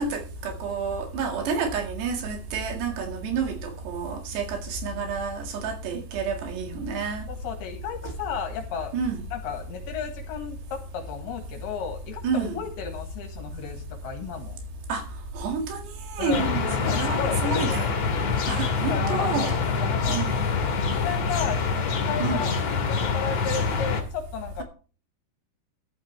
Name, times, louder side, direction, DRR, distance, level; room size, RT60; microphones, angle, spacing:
voice 1, 0.0-7.2 8.9-9.2 12.2-12.6 14.9-15.0 15.3-17.9 18.5-19.6 20.1-20.3 22.2-22.5, right 5 dB, 85° right, 4.1 m, -29 dB
voice 2, 7.3-8.9 9.3-14.6 16.2-17.9 18.9-19.4 19.7-20.2 20.9-22.5 22.9-24.6, left 7 dB, 70° left, 3.3 m, -34 dB
sound 1, 16.3-24.0, left 5 dB, 45° left, 2.8 m, -26 dB
13.5 x 11.0 x 3.3 m
omnidirectional pair, 4.8 m